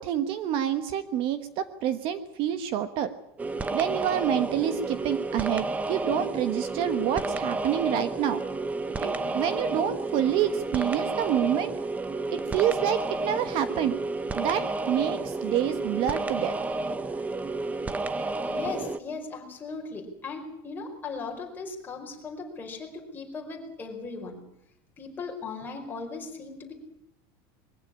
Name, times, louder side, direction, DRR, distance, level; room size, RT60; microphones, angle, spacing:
voice 1, 0.0-3.1 3.7-8.4 9.0-11.7 12.5-13.9 14.3-16.6, right 10 dB, 45° right, 11 dB, 1.3 m, -27 dB
sound 1, 3.4-19.0, right 2 dB, 10° right, 0.8 m, -31 dB
voice 2, 18.4-24.4 25.0-26.7, left 4 dB, 15° left, 1 dB, 4.8 m, -38 dB
22.5 x 16.0 x 10.0 m, 0.79 s
cardioid pair, 165°, 13 cm